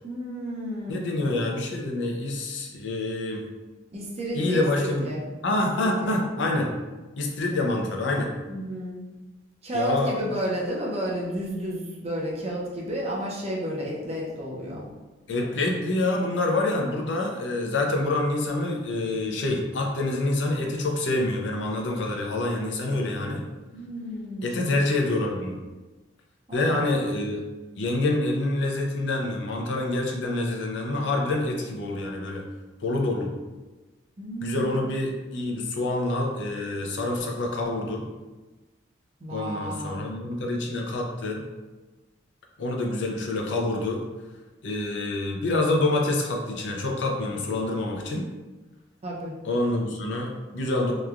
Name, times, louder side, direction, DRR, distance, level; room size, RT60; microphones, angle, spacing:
voice 1, 0.0-1.3 3.9-5.2 5.8-6.2 7.5-7.6 8.5-9.0 9.6-14.8 23.7-24.8 26.5-27.0 34.2-34.8 39.2-40.1 49.0-49.3, equal, 35° right, -4 dB, 0.6 m, -32 dB
voice 2, 0.9-3.4 4.3-5.1 5.4-6.7 7.2-8.3 9.7-10.2 15.3-23.4 24.4-25.6 26.5-27.4 27.8-32.4 32.8-33.3 34.4-38.0 39.3-41.4 42.6-44.0 44.6-48.3 49.4-50.9, left 2 dB, 65° left, 0 dB, 0.5 m, -27 dB
3.0 x 2.2 x 2.4 m, 1.2 s
head